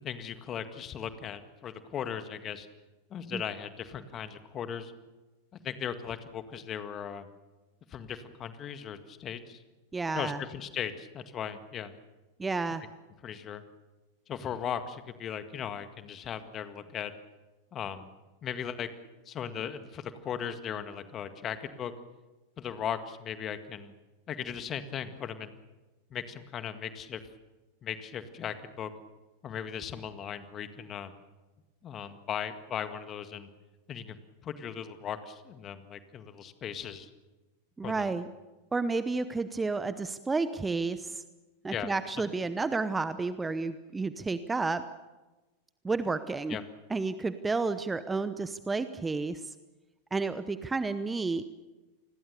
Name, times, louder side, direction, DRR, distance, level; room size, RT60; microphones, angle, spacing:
voice 1, 0.0-2.7 3.1-4.9 5.6-7.3 7.9-9.6 10.1-11.9 13.2-13.6 14.3-17.1 17.7-18.1 18.4-21.9 22.6-23.9 24.3-25.5 26.1-27.2 27.8-28.9 29.4-31.1 31.8-33.5 33.9-34.2 34.4-37.1 37.8-38.1 41.7-41.9 46.5-46.6, left 8 dB, 30° left, 10 dB, 1.9 m, -37 dB
voice 2, 9.9-10.4 12.4-12.8 37.8-38.3 38.7-41.2 41.6-44.9 45.8-46.6 46.9-49.4 50.1-51.4, right 3 dB, 10° right, 13 dB, 0.9 m, -31 dB
28.5 x 21.0 x 6.9 m, 1.2 s
figure-of-eight pair, 90°, 0 cm